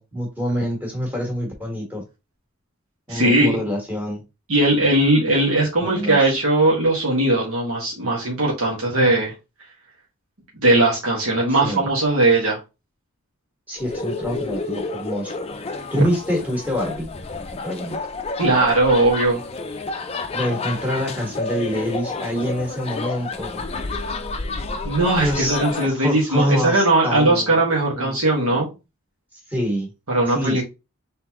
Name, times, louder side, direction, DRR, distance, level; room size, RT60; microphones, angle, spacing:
voice 1, 0.0-2.0 3.1-4.2 5.8-6.2 11.5-11.8 13.7-15.3 15.9-17.1 17.6-18.0 20.3-23.6 25.2-25.6 25.8-27.6 27.9-28.2 28.5-28.6 29.5-29.9 30.3-30.6, equal, 10° right, 1.7 m, -26 dB
voice 2, 3.1-3.6 4.5-9.3 10.5-12.6 18.4-19.4 24.8-28.7 30.1-30.6, right 2 dB, 75° right, 1.7 m, -19 dB
sound 1, 13.8-25.9, left 3 dB, 25° left, 0.4 m, -30 dB
3.9 x 3.9 x 2.9 m
head